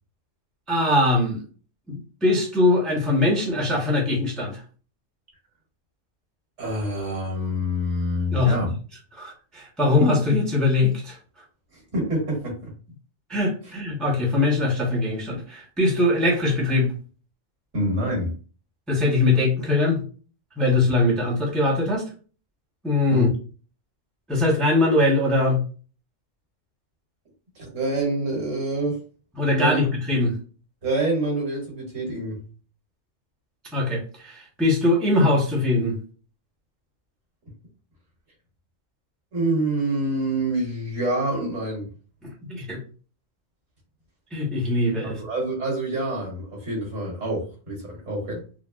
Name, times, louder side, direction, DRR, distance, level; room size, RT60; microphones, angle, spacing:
voice 1, 0.7-1.4 1.9-4.6 8.3-8.6 9.1-11.2 13.3-16.9 18.9-20.0 20.6-22.0 22.8-23.3 24.3-25.6 29.4-30.3 33.7-36.0 42.2-42.8 44.3-45.2, left 2 dB, ahead, 0.6 m, -22 dB
voice 2, 6.6-8.7 11.7-12.8 17.7-18.3 23.1-23.3 27.6-29.0 29.4-29.8 30.8-32.5 39.3-41.9 45.0-48.5, right 1 dB, 80° right, 1.9 m, -26 dB
3.9 x 2.0 x 2.3 m
omnidirectional pair, 1.3 m